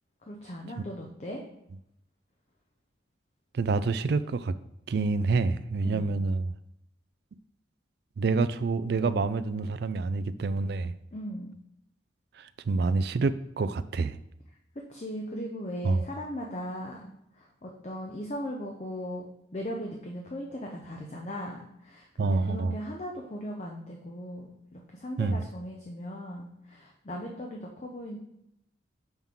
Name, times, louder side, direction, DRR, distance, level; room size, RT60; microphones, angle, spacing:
voice 1, 0.2-1.4 5.8-6.2 11.1-11.5 14.9-28.2, equal, 35° left, 0 dB, 0.6 m, -38 dB
voice 2, 3.5-4.5 4.9-6.5 8.2-10.9 12.4-14.2 15.8-16.0 22.2-22.8 25.2-25.4, right 3 dB, 55° right, 14 dB, 0.3 m, -27 dB
5.9 x 5.5 x 3.6 m, 0.80 s
head